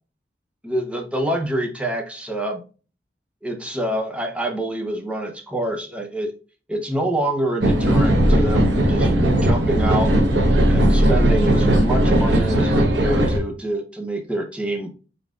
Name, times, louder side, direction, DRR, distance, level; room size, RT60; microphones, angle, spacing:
voice 1, 0.6-2.6 3.4-6.3 6.7-10.1 10.7-14.9, right 1 dB, 5° right, 2 dB, 0.8 m, -26 dB
sound 1, 7.6-13.4, right 1 dB, 80° right, 0.9 m, -17 dB
4.1 x 4.0 x 2.5 m, 0.36 s
head